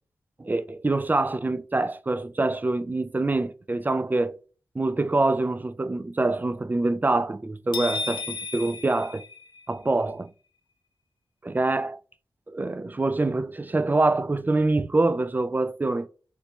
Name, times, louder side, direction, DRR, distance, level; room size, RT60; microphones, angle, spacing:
voice 1, 0.4-4.4 4.8-9.2 9.7-10.3 11.4-12.0 12.5-16.1, right 2 dB, 20° right, 0.3 m, -25 dB
sound 1, 7.7-9.9, left 4 dB, 75° left, 0.5 m, -34 dB
3.2 x 2.9 x 3.1 m
cardioid pair, 50°, 8 cm